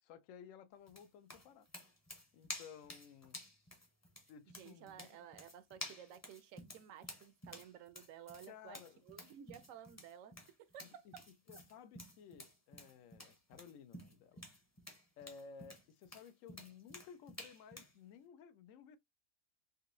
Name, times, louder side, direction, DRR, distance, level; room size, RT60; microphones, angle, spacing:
voice 1, 0.0-1.7 2.3-3.4 4.3-5.2 6.1-6.2 8.5-9.0 11.0-11.1 11.5-14.4 15.2-19.0, left 7 dB, 70° left, 0.9 m, -56 dB
sound 1, 0.9-18.0, left 1 dB, 15° left, 0.6 m, -52 dB
voice 2, 4.6-11.3, right 9 dB, 70° right, 0.9 m, -55 dB
4.0 x 2.5 x 2.5 m
omnidirectional pair, 1.6 m